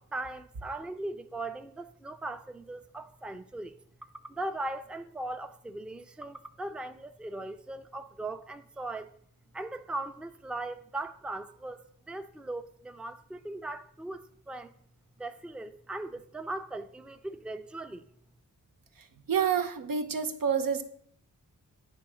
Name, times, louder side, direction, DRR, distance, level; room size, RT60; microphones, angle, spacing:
voice 1, 0.0-3.8 4.2-9.2 9.5-14.7 15.2-18.1, right 2 dB, 5° right, 0.4 m, -39 dB
voice 2, 19.3-20.8, right 7 dB, 85° right, 0.8 m, -28 dB
8.6 x 3.5 x 6.2 m
wide cardioid pair, 85°, 33 cm